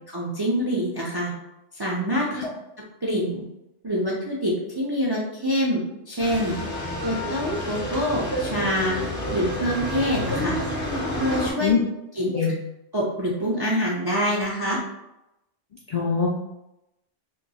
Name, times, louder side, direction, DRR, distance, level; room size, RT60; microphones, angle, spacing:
voice 1, 0.1-1.3 1.7-2.4 3.0-3.4 3.8-5.8 6.1-6.6 7.0-9.0 9.3-10.6 11.2-11.7 12.2-12.5 12.9-14.8, equal, 40° right, -4 dB, 0.3 m, -25 dB
sound 1, 6.2-11.5, left 1 dB, 20° left, 0.6 m, -29 dB
voice 2, 15.9-16.3, left 6 dB, 70° left, -2 dB, 0.3 m, -22 dB
2.7 x 2.2 x 4.0 m, 0.91 s
omnidirectional pair, 1.2 m